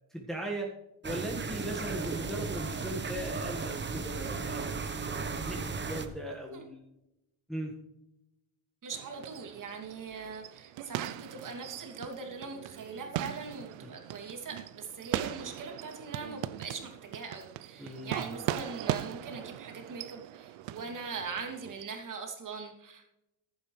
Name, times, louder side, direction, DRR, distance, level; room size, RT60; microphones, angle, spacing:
voice 1, 0.1-0.7 1.0-6.8 7.5-7.7 17.8-18.5, right 1 dB, ahead, -2 dB, 1.7 m, -39 dB
sound 1, 1.0-6.1, right 4 dB, 25° right, 1.1 m, -35 dB
voice 2, 8.8-23.2, right 4 dB, 45° right, 2 dB, 2.8 m, -41 dB
sound 2, 8.9-21.8, right 13 dB, 80° right, 0.7 m, -39 dB
15.0 x 11.0 x 3.3 m, 0.89 s
cardioid pair, 115°, 45 cm